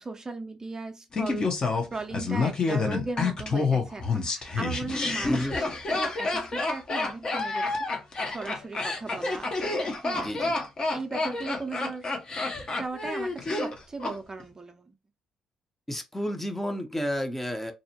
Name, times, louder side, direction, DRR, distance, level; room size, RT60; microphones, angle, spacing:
voice 1, 0.0-7.9 8.3-9.5 10.0-10.3 10.8-12.1 12.8-15.0, right 3 dB, 30° right, 0.5 m, -37 dB
Laughter, 1.1-14.1 14.4-14.5, left 3 dB, 45° left, 0.8 m, -28 dB
voice 2, 5.2-5.6 10.2-10.6 15.9-17.7, equal, 10° left, 0.6 m, -31 dB
2.6 x 2.0 x 2.7 m
hypercardioid pair, 55°, 2 cm